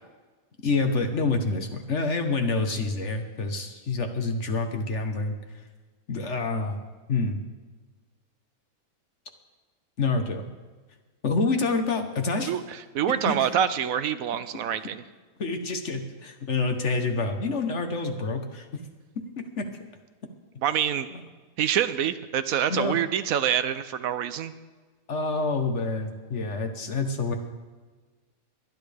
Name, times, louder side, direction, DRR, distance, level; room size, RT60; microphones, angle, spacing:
voice 1, 0.6-5.4 6.1-6.8 7.1-7.4 10.0-10.4 11.2-12.5 13.2-13.5 15.4-18.6 19.4-19.7 22.7-23.0 25.1-27.3, left 3 dB, 55° left, 5 dB, 1.3 m, -27 dB
voice 2, 12.9-15.0 20.6-21.1 21.6-24.5, right 9 dB, 70° right, 12 dB, 1.0 m, -26 dB
23.0 x 10.5 x 3.4 m, 1.3 s
omnidirectional pair, 1.6 m